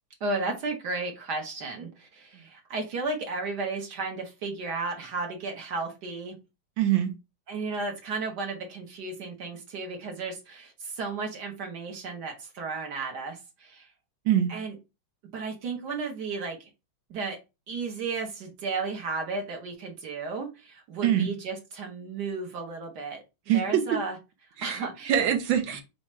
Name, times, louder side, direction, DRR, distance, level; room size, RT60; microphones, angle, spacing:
voice 1, 0.2-6.3 7.5-13.9 14.5-14.7 15.3-16.7 17.1-17.4 17.7-23.2 23.5-24.2 24.6-25.1, right 3 dB, 60° right, 1.6 m, -34 dB
voice 2, 6.8-7.1 14.2-14.5 21.0-21.3 23.5-24.0 24.6-25.8, right 10 dB, 75° right, 1.5 m, -24 dB
4.7 x 2.4 x 4.2 m
omnidirectional pair, 2.2 m